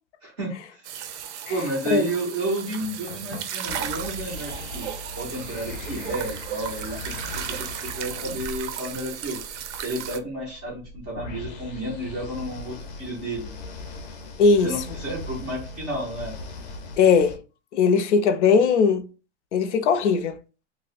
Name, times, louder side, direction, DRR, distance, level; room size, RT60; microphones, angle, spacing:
voice 1, 0.2-0.9 1.5-4.9 5.2-9.4 9.8-13.5 14.6-16.3, right 1 dB, 10° right, 0.3 m, -31 dB
sound 1, 0.8-10.2, right 9 dB, 90° right, 0.5 m, -35 dB
sound 2, 3.6-17.4, left 2 dB, 40° left, 0.5 m, -39 dB
voice 2, 14.4-14.7 17.0-17.4 17.7-19.1 19.5-20.4, left 5 dB, 90° left, 0.6 m, -19 dB
2.7 x 2.0 x 3.9 m
supercardioid pair, 170°, 34 cm